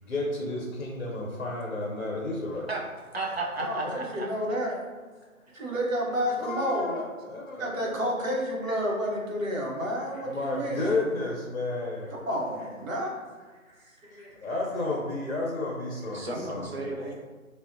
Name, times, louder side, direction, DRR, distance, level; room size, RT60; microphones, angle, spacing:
voice 1, 0.0-2.7 6.4-8.1 8.6-8.7 10.1-12.2 13.7-16.7, left 2 dB, 60° left, -3 dB, 0.5 m, -32 dB
voice 2, 2.7-4.3 16.1-17.3, right 2 dB, 50° right, -1 dB, 0.4 m, -34 dB
voice 3, 3.6-4.8 5.5-6.9 7.6-10.9 12.1-13.2 14.0-14.3, equal, 65° right, -2 dB, 0.8 m, -30 dB
2.7 x 2.1 x 2.4 m, 1.3 s
figure-of-eight pair, 155°, 42 cm